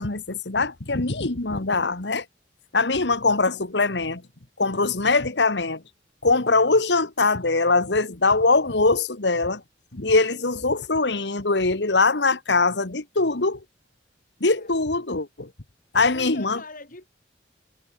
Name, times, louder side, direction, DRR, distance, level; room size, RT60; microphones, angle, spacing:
voice 1, 0.0-2.3 2.7-4.2 4.6-5.8 6.2-9.6 9.9-13.6 14.4-15.5 16.0-16.6, left 3 dB, 75° left, 1.8 m, -22 dB
voice 2, 15.9-17.1, left 2 dB, 50° left, 7.4 m, -41 dB
head